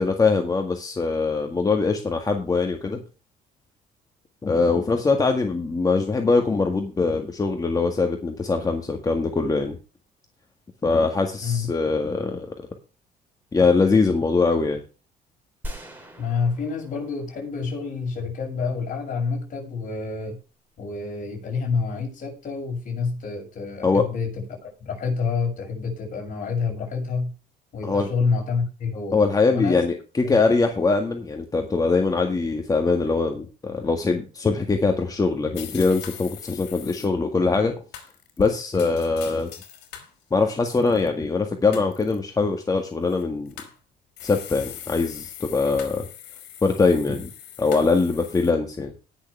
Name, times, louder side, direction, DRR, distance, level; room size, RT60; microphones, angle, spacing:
voice 1, 0.0-3.0 4.4-9.8 10.8-12.5 13.5-14.8 23.8-24.1 27.8-28.1 29.1-37.7 38.4-39.5 40.3-43.5 44.2-46.1 46.6-47.3 47.6-48.9, left 4 dB, 20° left, 4 dB, 1.8 m, -22 dB
sound 1, 15.6-18.0, equal, 10° right, 3.8 m, -40 dB
voice 2, 16.2-20.4 20.8-27.3 27.7-29.2 29.5-29.8 30.2-30.3, left 5 dB, 50° left, 1 dB, 6.8 m, -28 dB
sound 2, 35.5-37.1 37.9-40.1 40.6-41.1 41.7-42.2 43.1-43.8 44.2-48.5, left 10 dB, 80° left, 3.0 m, -41 dB
19.0 x 6.7 x 3.4 m, 0.33 s
cardioid pair, 110°, 17 cm